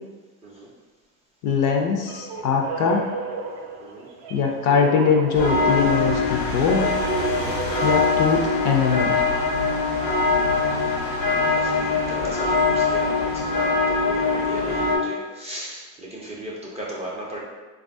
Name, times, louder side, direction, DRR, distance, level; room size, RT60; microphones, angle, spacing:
voice 1, 1.4-3.0 4.3-6.8 7.8-9.2, left 6 dB, 45° left, 2 dB, 0.4 m, -21 dB
sound 1, 2.0-8.8, right 5 dB, 55° right, 0.6 m, -34 dB
sound 2, 5.3-15.0, left 3 dB, 85° left, 1.1 m, -22 dB
voice 2, 11.2-17.4, right 1 dB, 15° right, -5 dB, 0.4 m, -36 dB
3.3 x 2.3 x 2.5 m, 1.3 s
supercardioid pair, 100°, 45 cm